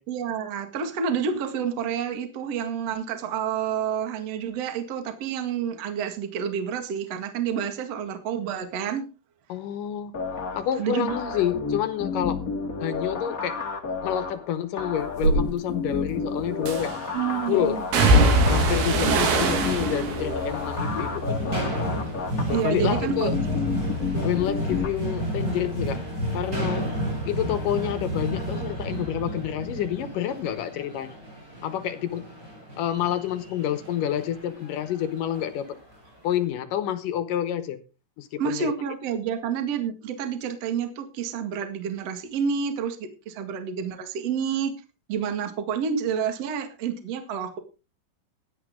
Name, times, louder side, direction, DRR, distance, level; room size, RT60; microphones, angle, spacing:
voice 1, 0.1-9.0 10.8-11.1 17.1-17.8 19.0-19.5 22.5-23.5 26.8-26.9 38.4-44.7 45.1-47.6, right 7 dB, 45° right, 2.4 m, -29 dB
voice 2, 9.5-10.1 10.5-12.4 12.8-13.6 14.0-16.9 17.5-17.8 18.5-21.6 22.5-23.4 24.2-26.0 26.3-26.9 27.3-31.2 31.6-32.3 32.8-35.8 36.2-37.8 38.2-38.7, left 10 dB, 70° left, 2.2 m, -28 dB
sound 1, 10.1-24.9, left 4 dB, 50° left, 1.0 m, -31 dB
sound 2, 15.2-15.4 16.7-17.1 17.9-22.2 22.5-23.1 23.5-26.8 27.0-28.2 28.4-28.6, right 1 dB, 80° right, 4.5 m, -24 dB
sound 3, 20.8-36.1, equal, 25° right, 7.8 m, -32 dB
16.5 x 11.0 x 3.7 m
omnidirectional pair, 4.7 m